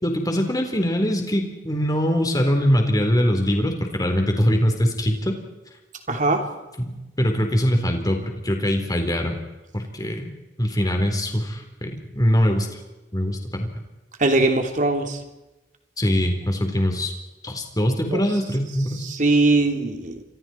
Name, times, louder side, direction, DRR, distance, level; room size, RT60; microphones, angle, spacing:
voice 1, 0.0-5.4 6.8-9.3 9.7-10.3 10.6-12.7 13.1-13.7 16.0-17.1 17.4-19.0, equal, 20° left, 4 dB, 4.2 m, -22 dB
voice 2, 6.1-6.4 14.2-15.2 18.1-18.2 19.0-20.2, right 2 dB, 45° right, 5 dB, 3.1 m, -20 dB
30.0 x 26.0 x 4.6 m, 1.1 s
head